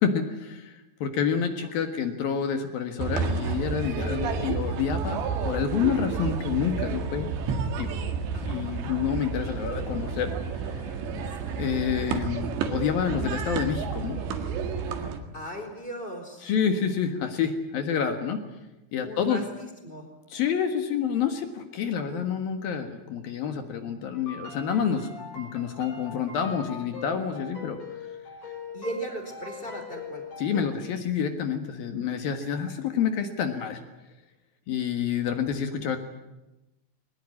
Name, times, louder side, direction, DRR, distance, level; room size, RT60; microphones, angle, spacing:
voice 1, 0.0-7.3 7.8-7.9 8.4-10.3 10.6-11.0 11.6-14.2 16.4-18.4 18.9-19.4 20.3-27.8 30.4-33.8 34.7-36.0, left 7 dB, 60° left, 7 dB, 2.9 m, -28 dB
voice 2, 1.6-2.1 8.3-8.7 11.3-11.6 15.3-16.5 19.0-20.1 28.7-30.3, right 1 dB, 10° left, 5 dB, 4.0 m, -38 dB
sound 1, 3.0-15.2, right 5 dB, 70° right, 3.9 m, -30 dB
sound 2, 24.1-30.7, left 5 dB, 40° left, 7.1 m, -41 dB
22.0 x 20.0 x 9.8 m, 0.98 s
omnidirectional pair, 5.5 m